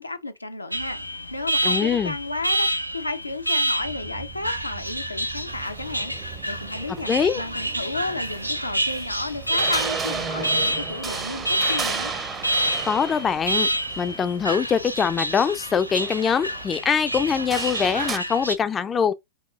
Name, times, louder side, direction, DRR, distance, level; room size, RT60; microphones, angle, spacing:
voice 1, 0.0-7.1 7.4-12.1, left 2 dB, 85° left, 0.5 m, -33 dB
Alarm, 0.7-18.6, right 1 dB, 90° right, 0.4 m, -28 dB
voice 2, 1.6-2.1 7.1-7.4 12.8-13.7 14.0-19.1, left 7 dB, 20° left, 0.3 m, -23 dB
sound 1, 3.8-15.2, right 7 dB, 60° right, 1.1 m, -46 dB
sound 2, 5.5-18.2, right 5 dB, 20° right, 0.6 m, -35 dB
5.5 x 2.9 x 2.4 m
figure-of-eight pair, 90°, 0 cm